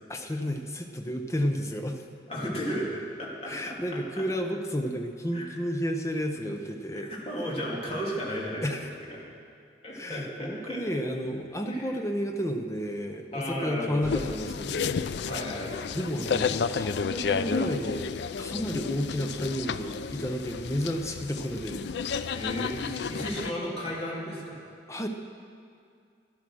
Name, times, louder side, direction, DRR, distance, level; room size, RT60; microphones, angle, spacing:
voice 1, 0.1-2.0 3.5-7.1 8.6-8.9 9.9-15.0 15.9-18.1 18.4-21.8 24.9-25.1, equal, 15° left, 4 dB, 0.8 m, -31 dB
voice 2, 2.3-2.9 3.2-3.8 4.2-4.3 5.3-5.5 6.9-9.2 9.8-10.8 11.7-11.9 13.3-14.1 15.2-15.7 18.5-18.7 22.3-24.6, equal, 30° left, -4 dB, 2.6 m, -34 dB
sound 1, 14.0-23.5, left 5 dB, 60° left, 0.4 m, -31 dB
12.5 x 11.5 x 6.3 m, 2.3 s
head